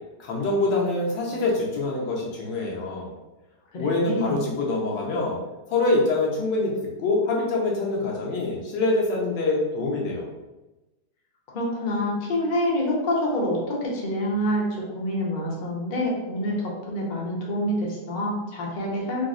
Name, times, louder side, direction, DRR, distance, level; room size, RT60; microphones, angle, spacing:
voice 1, 0.2-3.1 3.7-5.4 5.7-6.7 7.0-10.3, left 2 dB, 85° left, -3 dB, 1.4 m, -25 dB
voice 2, 3.7-4.5 11.5-19.2, left 1 dB, 60° left, -3 dB, 0.5 m, -27 dB
3.8 x 2.0 x 2.4 m, 1.1 s
omnidirectional pair, 1.9 m